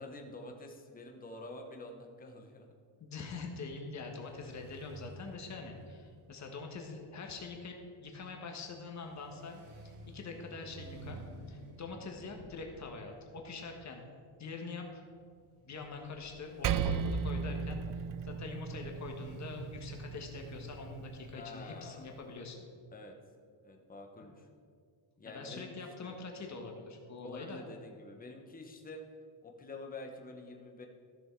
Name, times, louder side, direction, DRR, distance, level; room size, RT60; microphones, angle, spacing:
voice 1, 0.0-2.7 21.3-22.0 22.9-23.2 23.6-24.5 25.2-25.7 26.0-26.2 27.2-29.0 29.4-30.9, left 2 dB, 15° left, 2 dB, 1.0 m, -47 dB
voice 2, 3.0-11.2 11.5-14.1 14.4-15.0 15.6-22.7 25.2-27.6, left 4 dB, 35° left, 2 dB, 1.5 m, -44 dB
sound 1, 3.9-21.2, right 2 dB, 80° right, 1.8 m, -53 dB
Percussion, 16.6-21.4, right 7 dB, 45° right, 0.4 m, -36 dB
14.0 x 6.3 x 4.6 m, 2.1 s
cardioid pair, 150°, 49 cm